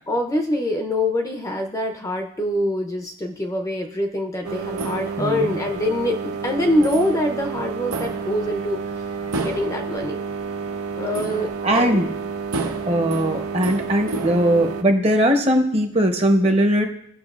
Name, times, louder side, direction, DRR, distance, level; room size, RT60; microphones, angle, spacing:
voice 1, 0.1-8.8 9.3-10.2 11.0-12.0 12.6-12.7, left 1 dB, 15° left, 3 dB, 0.6 m, -24 dB
sound 1, 4.4-14.8, right 4 dB, 90° right, 0.8 m, -29 dB
voice 2, 5.2-5.5 11.6-12.1 12.9-16.9, equal, 30° right, 4 dB, 0.8 m, -19 dB
17.0 x 6.1 x 2.4 m, 0.70 s
head